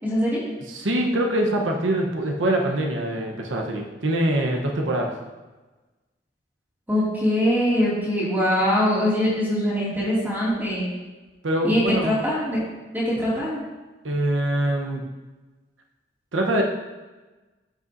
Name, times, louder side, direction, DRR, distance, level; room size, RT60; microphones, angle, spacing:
voice 1, 0.0-0.4 6.9-11.0 11.6-12.6 12.9-13.6, equal, 10° right, -9 dB, 2.4 m, -22 dB
voice 2, 0.7-5.1 11.4-12.2 14.0-15.0 16.3-16.6, right 1 dB, 85° right, 1 dB, 1.0 m, -24 dB
13.0 x 5.5 x 2.7 m, 1.2 s
head